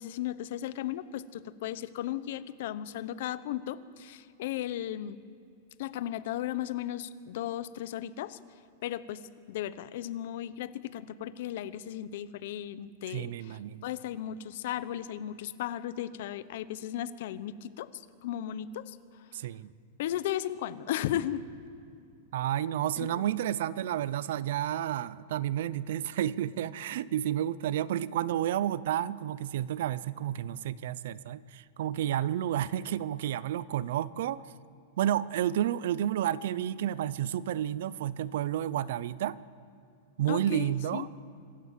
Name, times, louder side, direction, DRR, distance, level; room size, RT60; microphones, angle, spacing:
voice 1, 0.0-5.2 5.8-8.4 8.8-9.2 9.5-19.3 20.0-21.4 22.9-23.1 40.3-41.1, left 12 dB, 50° left, 15 dB, 0.8 m, -36 dB
voice 2, 13.1-13.9 19.3-19.7 22.3-34.4 35.0-39.4 40.2-41.1, right 11 dB, 55° right, 19 dB, 0.6 m, -31 dB
26.0 x 15.0 x 7.4 m, 2.6 s
supercardioid pair, 175°, 0 cm